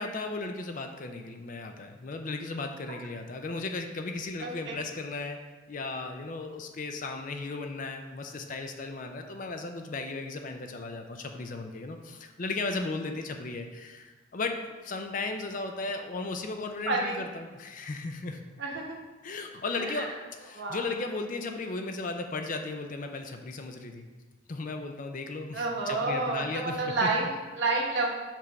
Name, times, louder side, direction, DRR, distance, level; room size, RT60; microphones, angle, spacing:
voice 1, 0.0-5.4 5.7-14.6 14.8-18.4 19.2-20.1 20.4-24.1 24.5-27.1, left 3 dB, 40° left, 5 dB, 0.4 m, -36 dB
voice 2, 4.4-4.8 16.9-17.2 18.6-19.0 19.8-20.1 20.5-20.8 25.5-28.1, right 3 dB, 55° right, -1 dB, 1.1 m, -29 dB
5.9 x 3.3 x 5.7 m, 1.3 s
head